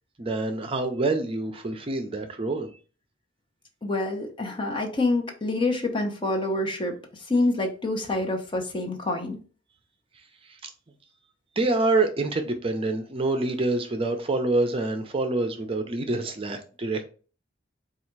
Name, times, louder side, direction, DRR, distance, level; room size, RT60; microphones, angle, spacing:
voice 1, 0.2-2.7 10.6-10.7 11.6-17.0, right 2 dB, 30° right, 0.5 m, -26 dB
voice 2, 3.8-9.4, left 2 dB, 30° left, 0.9 m, -27 dB
4.1 x 2.4 x 4.5 m
head